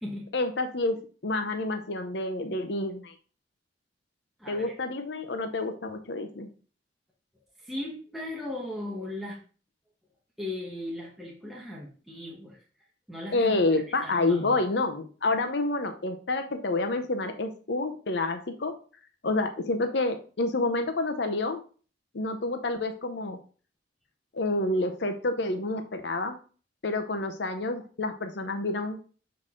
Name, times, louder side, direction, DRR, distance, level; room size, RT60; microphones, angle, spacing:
voice 1, 0.3-3.1 4.5-6.5 13.3-18.7 19.2-21.6 22.1-23.4 24.3-26.4 26.8-29.0, left 2 dB, 70° left, 7 dB, 0.7 m, -28 dB
voice 2, 7.6-9.4 10.4-12.6 13.1-13.6 14.0-14.6, left 1 dB, ahead, -4 dB, 1.2 m, -37 dB
6.5 x 4.0 x 3.7 m, 0.38 s
head